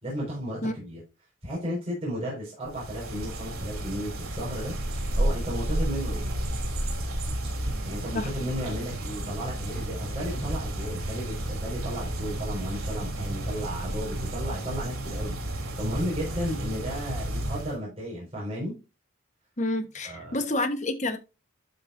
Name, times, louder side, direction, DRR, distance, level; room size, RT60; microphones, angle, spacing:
voice 1, 0.0-1.0 1.4-4.7 5.2-6.3 7.8-18.7 20.0-20.4, equal, 30° right, 5.1 m, -34 dB
sound 1, 2.6-17.8, right 1 dB, 80° right, 3.0 m, -32 dB
voice 2, 19.6-21.2, left 2 dB, 35° left, 1.3 m, -28 dB
13.0 x 5.8 x 2.7 m
head